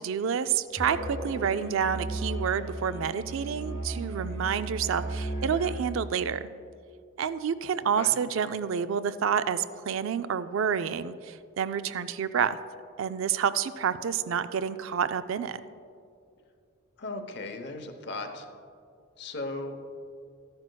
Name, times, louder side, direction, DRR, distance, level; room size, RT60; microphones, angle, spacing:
voice 1, 0.0-6.4 7.2-12.6 13.0-15.6, right 7 dB, 75° right, 13 dB, 0.4 m, -29 dB
Musical instrument, 0.8-5.9, right 2 dB, 35° right, 1.7 m, -35 dB
voice 2, 17.0-18.5 19.2-19.9, left 2 dB, 55° left, 6 dB, 0.8 m, -37 dB
13.5 x 10.5 x 2.3 m, 2.4 s
head